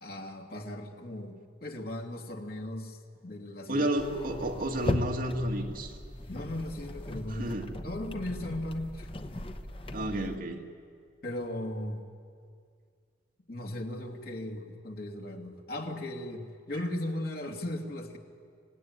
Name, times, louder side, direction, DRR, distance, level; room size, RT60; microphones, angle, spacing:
voice 1, 0.0-3.9 6.3-9.1 11.2-12.0 13.5-18.2, left 1 dB, 60° left, 1 dB, 2.5 m, -37 dB
voice 2, 3.7-6.0 7.4-7.7 9.9-10.6, right 1 dB, 55° right, 2 dB, 2.1 m, -31 dB
sound 1, 4.0-10.4, left 1 dB, 30° left, 1.0 m, -37 dB
26.5 x 17.5 x 9.6 m, 2.1 s
head